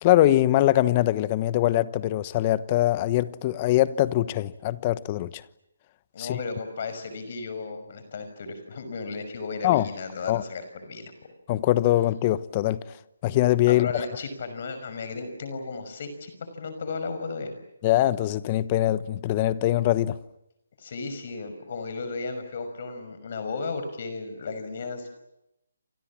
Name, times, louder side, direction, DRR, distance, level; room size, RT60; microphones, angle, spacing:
voice 1, 0.0-5.4 6.2-6.4 9.6-9.9 10.3-10.4 11.5-13.0 13.2-13.9 17.8-20.2, left 14 dB, 25° left, 1.0 m, -22 dB
voice 2, 6.1-11.1 13.7-16.3 16.6-17.5 20.8-25.2, left 4 dB, 45° left, 5.9 m, -34 dB
29.5 x 27.0 x 7.4 m
hypercardioid pair, 155°, 0 cm